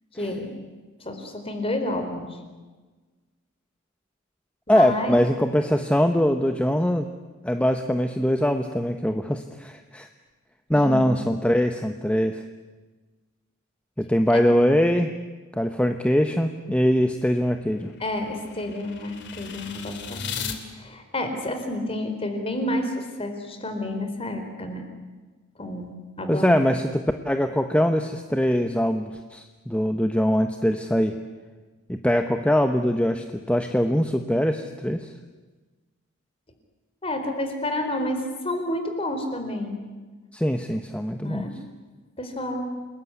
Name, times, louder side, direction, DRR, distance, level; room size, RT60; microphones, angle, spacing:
voice 1, 0.1-0.5 1.0-2.4 4.7-5.1 10.7-11.1 14.3-14.4 18.0-20.5 20.7-24.8 25.6-26.6 37.0-39.8 41.2-41.6 42.2-42.7, left 1 dB, 25° left, 6 dB, 4.2 m, -30 dB
voice 2, 4.7-7.1 7.4-10.1 10.7-12.4 14.0-15.1 15.5-17.9 26.3-31.2 31.9-35.1 40.3-41.5, equal, 5° left, 6 dB, 1.0 m, -22 dB
sound 1, 17.0-20.6, left 6 dB, 55° left, 2.8 m, -37 dB
29.0 x 21.0 x 9.8 m, 1.3 s
head